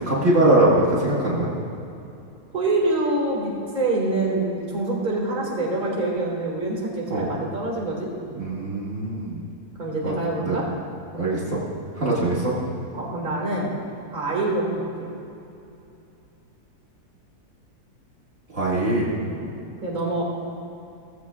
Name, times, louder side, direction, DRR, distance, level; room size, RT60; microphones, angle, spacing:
voice 1, 0.1-1.5 7.1-7.3 8.4-9.4 10.0-10.2 10.4-10.6 11.1-11.6 11.9-12.5 18.5-19.0, right 2 dB, 50° right, -7 dB, 2.4 m, -21 dB
voice 2, 2.5-8.1 9.8-10.7 12.9-13.7 14.1-15.1 19.3-19.5 19.8-20.2, right 2 dB, 30° right, -3 dB, 2.4 m, -25 dB
17.5 x 15.0 x 2.4 m, 2.8 s
omnidirectional pair, 1.7 m